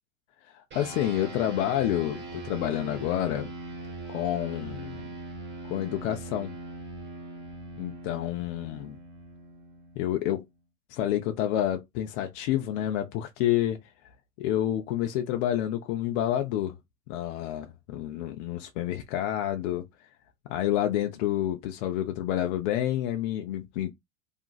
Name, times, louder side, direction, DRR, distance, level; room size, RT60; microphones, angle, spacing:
voice 1, 0.5-3.5 4.1-5.1 5.7-6.6 7.8-9.0 10.0-10.4 10.9-13.8 14.4-16.8 17.1-19.8 20.5-23.9, left 12 dB, 55° left, 0.5 m, -29 dB
sound 1, 0.7-10.4, right 2 dB, 25° right, 1.1 m, -41 dB
2.8 x 2.5 x 2.2 m
supercardioid pair, 125°, 44 cm